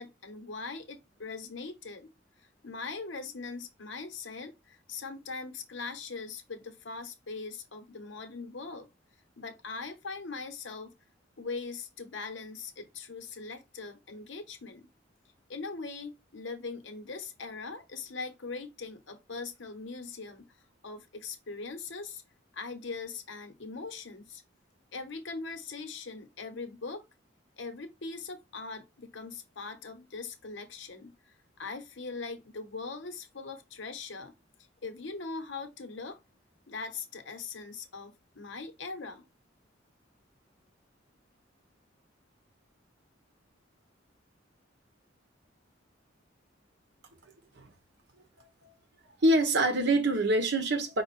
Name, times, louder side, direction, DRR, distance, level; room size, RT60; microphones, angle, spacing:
voice 1, 0.0-2.1 2.4-8.9 9.4-10.9 11.4-14.9 15.5-20.6 20.8-22.2 22.5-24.4 24.9-27.0 27.6-34.3 34.8-36.2 36.7-39.2, left 4 dB, 70° left, 1.0 m, -41 dB
voice 2, 49.2-51.0, right 1 dB, 65° right, 1.0 m, -25 dB
5.2 x 2.4 x 4.1 m
head